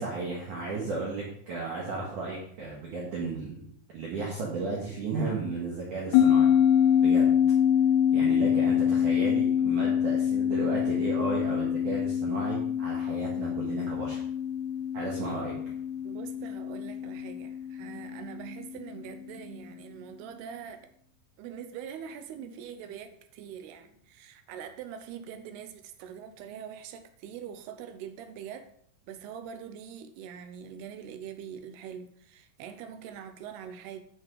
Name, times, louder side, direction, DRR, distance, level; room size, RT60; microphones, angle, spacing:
voice 1, 0.0-3.6 3.9-6.5 7.0-7.3 8.1-14.2 14.9-15.5, right 3 dB, 55° right, -4 dB, 2.7 m, -34 dB
sound 1, 6.1-18.9, left 9 dB, 85° left, 2.4 m, -25 dB
voice 2, 16.0-20.9 21.4-28.7 29.1-34.0, right 8 dB, 80° right, 8 dB, 2.5 m, -43 dB
10.5 x 6.1 x 4.8 m, 0.64 s
omnidirectional pair, 5.2 m